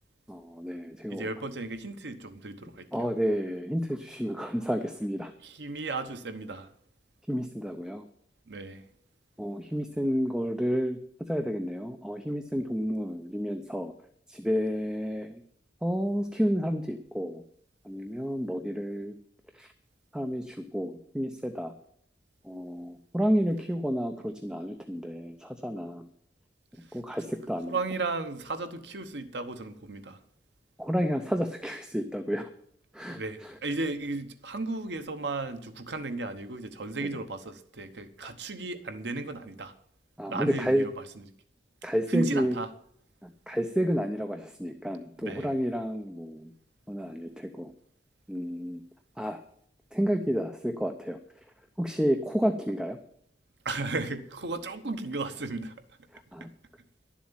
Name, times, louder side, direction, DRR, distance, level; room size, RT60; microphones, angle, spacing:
voice 1, 0.3-1.3 2.9-5.3 7.3-8.0 9.4-11.0 11.3-13.9 14.3-15.4 15.8-17.4 17.8-19.1 19.5-19.7 20.1-21.7 22.4-26.0 26.9-27.8 30.8-32.5 32.9-33.6 37.0-37.1 40.2-40.9 41.8-42.6 43.2-46.5 46.9-47.7 48.3-48.8 49.2-49.4 49.9-51.2 51.8-53.0 56.1-56.5, equal, 5° right, 6 dB, 0.7 m, -30 dB
voice 2, 1.1-2.9 5.4-6.7 8.5-8.8 27.7-30.2 33.1-39.7 40.3-41.0 42.1-42.7 45.2-45.5 53.6-55.7, right 3 dB, 75° right, 9 dB, 1.1 m, -34 dB
11.5 x 7.3 x 8.9 m, 0.66 s
head